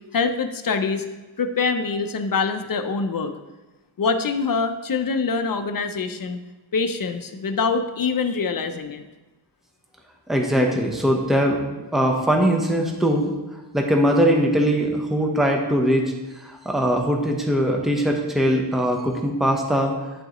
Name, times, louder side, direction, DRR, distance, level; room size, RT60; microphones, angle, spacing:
voice 1, 0.1-1.1 1.4-3.3 4.0-6.4 6.7-9.0, left 4 dB, 50° left, 7 dB, 0.6 m, -24 dB
voice 2, 10.3-13.3 13.7-16.1 16.4-19.9, equal, ahead, 1 dB, 0.9 m, -21 dB
11.0 x 3.9 x 3.0 m, 1.2 s
wide cardioid pair, 90°, 45 cm